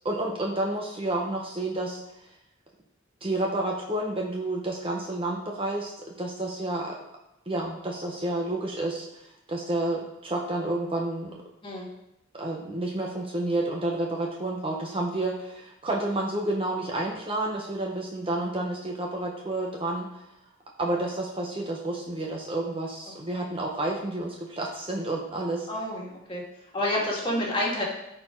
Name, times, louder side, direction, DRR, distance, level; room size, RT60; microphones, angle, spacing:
voice 1, 0.0-2.0 3.2-7.0 7.5-11.3 12.3-20.2 20.8-25.7, right 2 dB, 25° right, -1 dB, 1.0 m, -30 dB
voice 2, 25.7-26.4 26.7-27.8, left 1 dB, 25° left, -3 dB, 2.1 m, -29 dB
13.5 x 4.6 x 4.5 m, 0.85 s
head